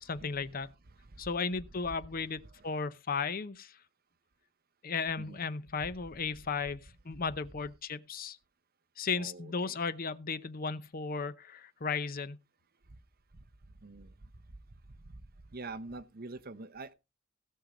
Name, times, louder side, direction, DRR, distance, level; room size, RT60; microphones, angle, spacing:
voice 1, 0.0-0.7 1.2-3.7 4.8-6.8 7.0-8.4 9.0-12.4, left 5 dB, 50° left, 0.7 m, -35 dB
voice 2, 9.1-9.8 13.8-14.1 15.5-16.9, right 3 dB, 50° right, 0.9 m, -45 dB
17.0 x 5.7 x 5.1 m
head